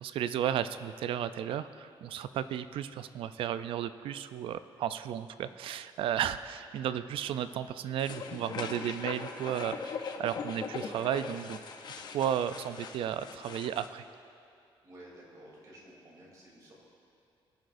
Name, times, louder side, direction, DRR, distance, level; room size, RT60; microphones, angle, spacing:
voice 1, 0.0-11.6 12.0-14.0, right 10 dB, 70° right, 13 dB, 0.4 m, -34 dB
sound 1, 8.0-13.9, left 5 dB, 50° left, 0.7 m, -41 dB
voice 2, 14.8-16.7, right 1 dB, 40° right, -4 dB, 3.0 m, -53 dB
20.0 x 10.5 x 2.6 m, 2.5 s
cardioid pair, 160°, 9 cm